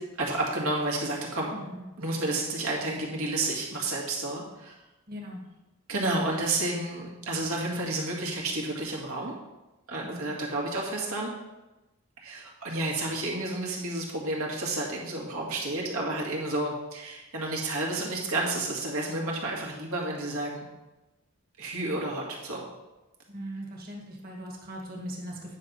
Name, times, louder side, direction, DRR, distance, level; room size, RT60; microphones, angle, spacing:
voice 1, 0.2-1.5 2.0-4.8 5.9-9.3 9.9-11.3 12.2-20.6 21.6-22.7, right 2 dB, 75° right, -3 dB, 2.0 m, -31 dB
voice 2, 1.5-1.8 5.1-5.4 10.0-10.3 23.3-25.6, equal, 40° right, -1 dB, 1.7 m, -39 dB
9.6 x 6.0 x 4.1 m, 1.0 s
head